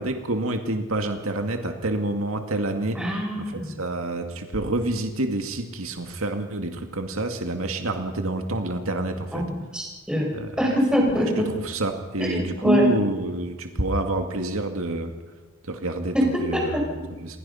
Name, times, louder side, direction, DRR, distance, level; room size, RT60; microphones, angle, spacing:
voice 1, 0.0-9.4 10.3-10.6 11.4-15.1 15.7-17.4, right 1 dB, 75° right, 5 dB, 2.2 m, -28 dB
voice 2, 2.9-3.8 9.3-10.3 10.6-11.4 12.2-12.9 16.1-16.8, equal, 5° right, -1 dB, 5.8 m, -24 dB
28.5 x 21.0 x 5.7 m, 1.2 s
head